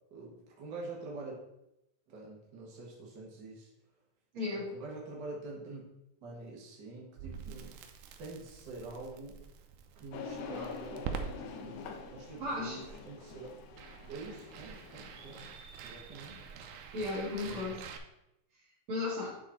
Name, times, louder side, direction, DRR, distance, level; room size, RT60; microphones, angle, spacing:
voice 1, 0.1-1.4 2.1-3.7 4.5-5.8 6.2-7.8 8.2-9.4 9.9-13.5 14.1-15.5 15.8-16.5 17.4-17.8, right 3 dB, 60° right, -3 dB, 1.1 m, -46 dB
voice 2, 4.3-4.7 12.4-12.8 16.9-17.9 18.9-19.3, left 2 dB, 40° right, -4 dB, 2.8 m, -35 dB
Crackle, 7.2-18.0, right 6 dB, 85° right, 2.5 m, -46 dB
sound 1, 10.1-15.6, left 5 dB, 75° left, 1.9 m, -46 dB
9.8 x 4.0 x 4.2 m, 0.85 s
omnidirectional pair, 4.1 m